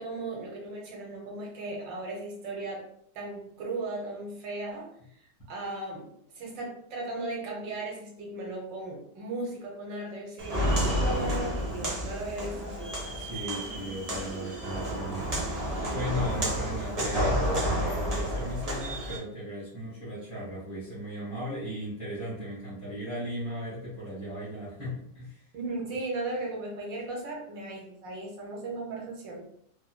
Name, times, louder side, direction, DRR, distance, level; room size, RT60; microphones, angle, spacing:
voice 1, 0.0-2.8 3.1-6.1 6.3-12.9 25.5-29.5, right 2 dB, 90° right, -1 dB, 1.6 m, -36 dB
Walk footsteps, 10.4-19.2, equal, 40° right, 0.5 m, -30 dB
voice 2, 13.1-25.4, equal, 20° left, -12 dB, 1.3 m, -37 dB
3.4 x 3.0 x 2.2 m, 0.70 s
omnidirectional pair, 1.9 m